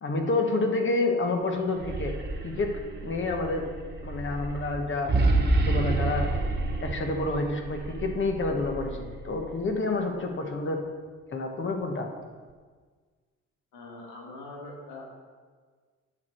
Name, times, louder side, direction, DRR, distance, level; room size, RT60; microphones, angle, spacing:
voice 1, 0.0-2.1 2.4-3.7 4.0-5.1 5.5-6.3 6.8-10.8 11.3-12.1, left 3 dB, 40° left, 3 dB, 1.4 m, -29 dB
sound 1, 1.6-9.8, right 2 dB, 35° right, 1.4 m, -29 dB
voice 2, 13.7-15.1, left 2 dB, 90° left, -1 dB, 1.7 m, -42 dB
9.5 x 6.4 x 4.6 m, 1.5 s
cardioid pair, 90°, 30 cm